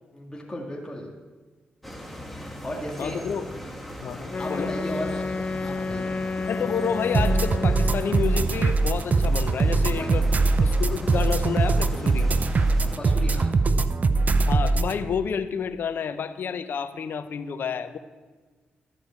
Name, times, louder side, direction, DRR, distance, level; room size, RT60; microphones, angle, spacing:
voice 1, 0.1-1.1 2.4-3.3 4.4-6.2 10.0-10.4 12.8-13.5, equal, 20° left, -2 dB, 2.2 m, -35 dB
sound 1, 1.8-13.0, left 1 dB, ahead, 1.6 m, -39 dB
voice 2, 3.0-3.4 4.0-4.7 6.5-10.2 10.6-12.3 14.5-18.0, left 6 dB, 65° left, 11 dB, 0.7 m, -29 dB
Wind instrument woodwind instrument, 4.3-8.5, left 3 dB, 40° left, 0.4 m, -31 dB
sound 2, 7.1-14.9, right 3 dB, 45° right, 0.6 m, -22 dB
13.0 x 4.9 x 8.4 m, 1.4 s
supercardioid pair, 55°, 4 cm